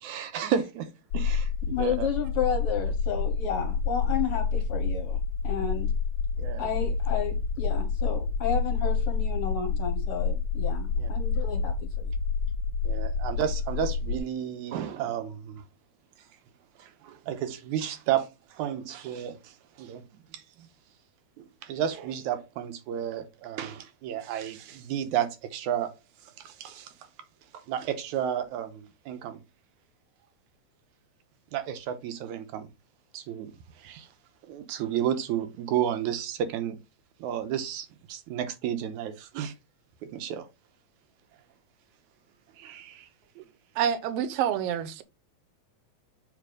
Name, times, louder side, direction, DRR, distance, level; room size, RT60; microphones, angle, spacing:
voice 1, 0.0-2.1 6.4-6.7 11.0-11.1 12.8-15.6 16.8-20.1 20.3-20.7 21.4-25.9 26.2-26.9 27.5-29.4 31.5-32.7 33.1-33.5 33.8-34.1 34.5-36.8 37.2-39.5 40.0-40.5 42.6-43.1, right 9 dB, 90° right, 2.3 m, -32 dB
sound 1, 1.1-14.2, left 5 dB, 80° left, 1.4 m, -28 dB
voice 2, 1.7-5.2 5.4-5.9 6.6-12.1, left 7 dB, 60° left, 1.7 m, -32 dB
voice 3, 43.8-45.0, right 9 dB, 70° right, 1.6 m, -27 dB
7.3 x 3.3 x 5.0 m
omnidirectional pair, 3.3 m